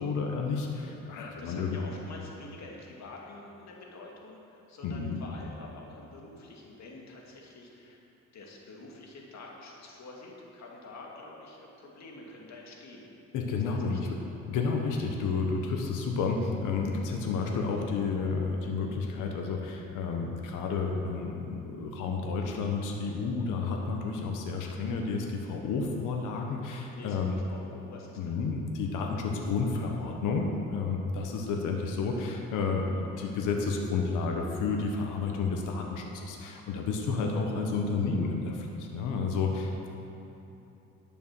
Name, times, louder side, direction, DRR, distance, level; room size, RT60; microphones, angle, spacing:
voice 1, 0.0-1.8 4.8-5.2 13.3-14.2 14.5-27.3 28.2-39.9, left 4 dB, 90° left, 1 dB, 1.2 m, -31 dB
voice 2, 1.4-8.0 8.3-13.1 13.9-14.0 27.0-28.4, left 2 dB, 65° left, -2 dB, 2.2 m, -47 dB
11.5 x 7.1 x 6.1 m, 3.0 s
cardioid pair, 90°, 30 cm